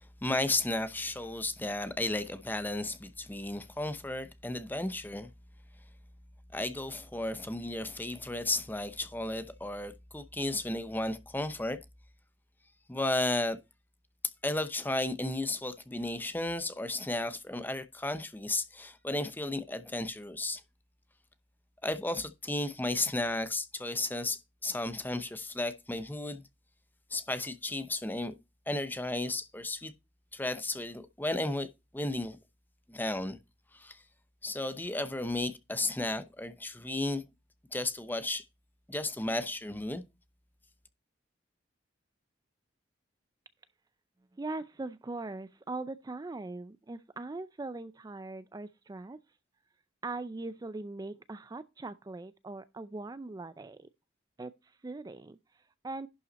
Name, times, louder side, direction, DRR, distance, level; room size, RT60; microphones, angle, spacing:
voice 1, 0.2-5.3 6.5-11.8 12.9-13.6 14.4-20.6 21.8-26.4 27.1-28.3 28.7-29.9 30.3-31.7 31.9-32.4 32.9-33.4 33.7-34.0 34.4-37.2 37.7-38.4 38.9-40.0, left 2 dB, 10° left, 0.7 m, -33 dB
voice 2, 44.3-49.2 50.0-53.9 54.4-56.1, right 2 dB, 20° right, 0.4 m, -41 dB
11.5 x 5.5 x 4.1 m
head